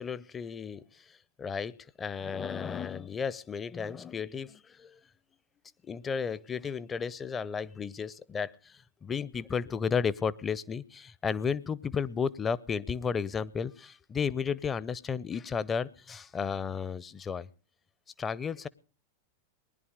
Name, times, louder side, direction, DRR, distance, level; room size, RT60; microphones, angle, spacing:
voice 1, 0.0-5.0 5.8-17.5 18.2-18.7, left 6 dB, 20° left, 19 dB, 0.6 m, -33 dB
20.0 x 11.0 x 5.0 m, 0.39 s
figure-of-eight pair, 90°, 0 cm